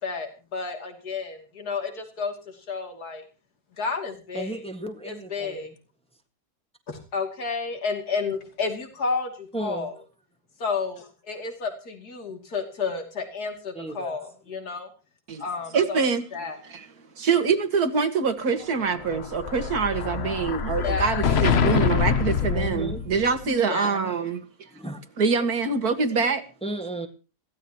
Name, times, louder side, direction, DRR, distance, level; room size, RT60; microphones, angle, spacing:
voice 1, 0.0-3.2 3.8-4.6 5.0-5.7 6.9-9.9 10.6-14.9 15.4-16.0 16.3-16.6 20.8-21.2 23.7-23.9, left 4 dB, 65° left, 3.2 m, -31 dB
voice 2, 4.3-5.7 9.5-9.9 13.7-14.2 19.9-20.0 22.5-23.0 23.8-24.2 24.7-25.0 26.6-27.1, right 2 dB, 5° left, 1.6 m, -34 dB
voice 3, 15.7-16.2 16.7-16.9 17.2-24.4 25.2-26.4, right 5 dB, 65° right, 2.2 m, -25 dB
Explosion, 18.8-23.4, left 7 dB, 45° left, 0.9 m, -25 dB
21.0 x 16.0 x 3.0 m
omnidirectional pair, 1.8 m